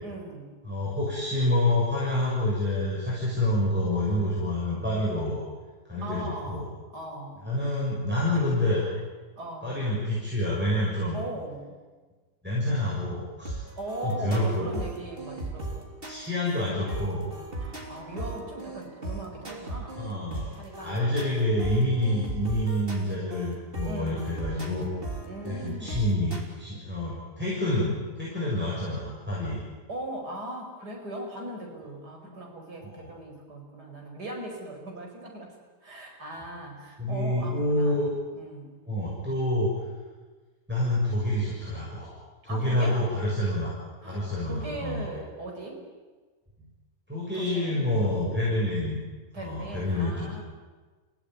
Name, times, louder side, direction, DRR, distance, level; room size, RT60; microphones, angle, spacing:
voice 1, 0.0-0.5 6.0-7.5 9.4-9.8 11.1-11.7 13.8-15.9 17.6-20.2 20.6-21.1 23.8-24.5 25.2-26.1 29.9-35.5 35.8-38.1 38.3-38.8 42.5-43.0 44.0-45.8 47.3-48.3 49.3-50.4, right 1 dB, 80° right, 1 dB, 5.8 m, -39 dB
voice 2, 0.6-5.4 5.9-6.7 7.4-8.8 9.6-11.2 12.4-13.6 14.0-14.7 16.1-17.3 20.0-20.5 20.8-24.9 25.5-29.6 32.8-33.0 37.0-38.1 38.9-39.7 40.7-42.2 42.4-43.7 44.0-45.1 47.1-49.0 49.3-50.4, left 1 dB, 5° right, -6 dB, 6.9 m, -27 dB
sound 1, 13.5-26.4, right 2 dB, 35° right, 3.4 m, -38 dB
29.0 x 17.0 x 9.6 m, 1.3 s
omnidirectional pair, 1.7 m